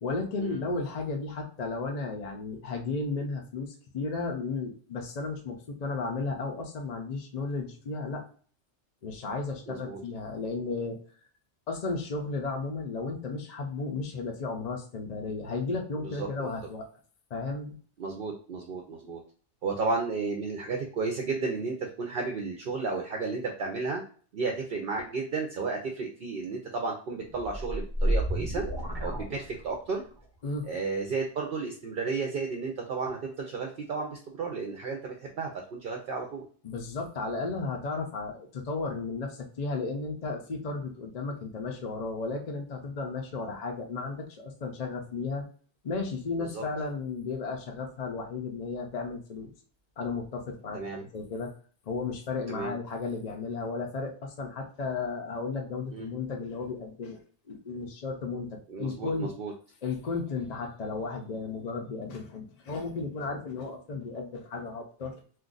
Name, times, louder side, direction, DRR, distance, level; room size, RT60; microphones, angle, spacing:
voice 1, 0.0-8.2 9.0-11.0 11.7-16.8 17.3-17.8 30.4-30.7 36.6-45.4 45.8-49.5 50.0-50.8 51.1-51.5 51.9-57.2 57.5-59.4 59.8-65.2, left 3 dB, 45° left, 2 dB, 0.6 m, -34 dB
voice 2, 9.7-10.0 16.0-16.5 18.0-19.2 19.6-24.0 24.3-28.6 29.0-30.0 30.7-36.5 46.4-46.6 50.7-51.0 52.5-52.7 55.9-56.1 58.7-59.5, right 4 dB, 60° right, 2 dB, 0.7 m, -33 dB
sound 1, 27.3-30.0, right 1 dB, 25° right, 0.8 m, -30 dB
2.6 x 2.3 x 3.8 m, 0.44 s
omnidirectional pair, 1.2 m